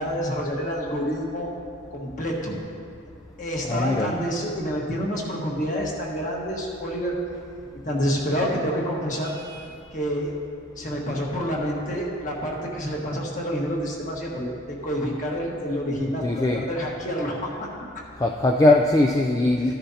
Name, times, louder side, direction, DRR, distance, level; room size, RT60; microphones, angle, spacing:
voice 1, 0.0-1.5 1.9-2.6 3.4-7.1 7.8-9.3 9.9-10.3 10.8-18.0, equal, 40° left, -2 dB, 1.5 m, -28 dB
voice 2, 3.7-4.2 9.4-9.6 16.2-16.6 18.2-19.7, left 2 dB, 15° left, 1 dB, 0.3 m, -21 dB
14.0 x 10.0 x 2.8 m, 2.3 s
head